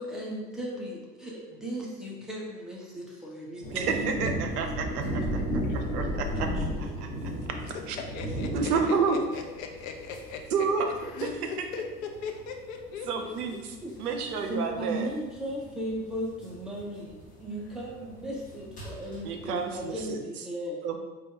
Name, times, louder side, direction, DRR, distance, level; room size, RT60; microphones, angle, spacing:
voice 1, 0.0-4.1 6.5-6.6 13.8-14.0 14.5-20.8, equal, ahead, -4 dB, 0.4 m, -36 dB
sound 1, 3.6-20.0, equal, 15° left, 1.2 m, -35 dB
voice 2, 3.7-5.2 5.9-6.0 6.4-6.5 6.8-7.3 7.7-8.0 8.4-9.2 10.5-11.7 13.0-13.7 14.0-15.1 19.2-20.2 20.8-21.0, right 5 dB, 70° right, 5 dB, 0.6 m, -30 dB
voice 3, 7.1-7.8 8.1-8.9 9.3-10.7 11.0-11.8 12.2-13.6 14.0-14.3, left 6 dB, 60° left, 3 dB, 0.6 m, -40 dB
3.6 x 2.3 x 3.6 m, 1.2 s
figure-of-eight pair, 70°, 48 cm